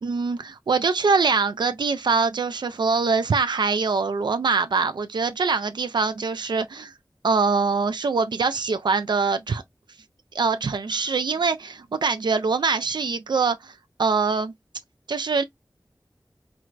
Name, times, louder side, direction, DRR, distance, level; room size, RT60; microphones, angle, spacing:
voice 1, 0.0-6.9 7.2-9.6 10.3-14.5 15.1-15.4, right 4 dB, 80° right, 0.3 m, -23 dB
4.4 x 2.1 x 2.4 m
wide cardioid pair, 60°, 7 cm